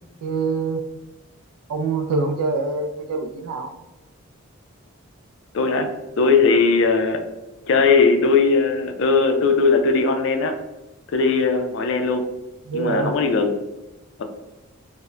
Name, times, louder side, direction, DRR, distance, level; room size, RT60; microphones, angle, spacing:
voice 1, 0.2-0.8 1.7-3.7 12.7-13.1, right 3 dB, 90° right, 6 dB, 0.3 m, -24 dB
voice 2, 5.5-5.9 6.2-7.2 7.7-10.6 11.1-12.3 12.7-13.5 14.2-14.3, left 4 dB, 55° left, 5 dB, 0.3 m, -18 dB
2.1 x 2.1 x 3.6 m, 1.0 s
head